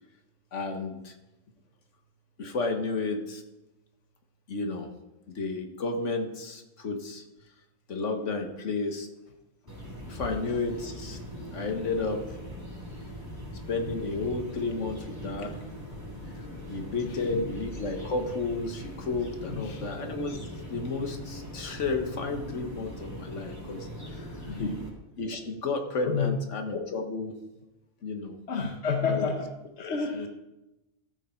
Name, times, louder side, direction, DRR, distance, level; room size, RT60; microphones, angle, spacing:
voice 1, 0.5-1.1 2.4-3.4 4.5-4.9 5.3-7.2 7.9-9.1 10.1-11.2 11.5-12.2 13.7-15.6 16.7-20.4 20.7-24.3 25.2-27.3 28.0-28.3 29.1-29.3 30.1-30.3, left 3 dB, 80° left, 4 dB, 1.6 m, -32 dB
sound 1, 9.7-24.9, equal, 20° right, 3.5 m, -41 dB
voice 2, 17.0-17.5 19.5-19.8 24.5-24.8 26.0-26.4 28.5-29.5 29.8-30.3, left 5 dB, 65° left, 3 dB, 1.3 m, -30 dB
14.0 x 6.6 x 4.5 m, 0.95 s
omnidirectional pair, 1.2 m